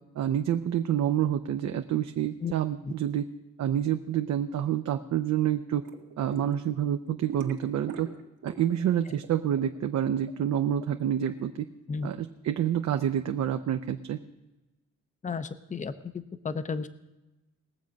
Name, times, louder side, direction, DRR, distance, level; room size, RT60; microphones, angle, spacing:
voice 1, 0.2-3.3 3.6-5.8 6.2-8.1 8.4-11.7 12.0-12.2 12.4-14.2, right 10 dB, 65° right, 6 dB, 0.7 m, -28 dB
sound 1, 5.8-6.5 6.8-8.9 9.1-11.3, right 8 dB, 80° right, 1.6 m, -42 dB
voice 2, 15.2-16.9, left 5 dB, 25° left, 12 dB, 0.8 m, -33 dB
20.0 x 7.3 x 5.2 m, 1.0 s
cardioid pair, 90°, 30 cm